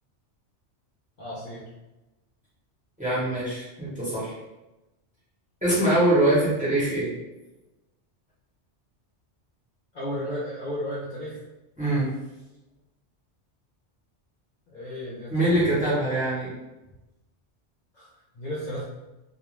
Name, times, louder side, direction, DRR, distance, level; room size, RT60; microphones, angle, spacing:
voice 1, 1.2-1.6 9.9-11.4 14.7-15.6 17.9-18.1 18.3-18.8, equal, 45° left, -8 dB, 0.7 m, -33 dB
voice 2, 3.0-4.4 5.6-7.1 11.8-12.1 15.3-16.5, right 1 dB, 5° right, -9 dB, 0.8 m, -23 dB
2.4 x 2.2 x 3.1 m, 1.0 s
omnidirectional pair, 1.2 m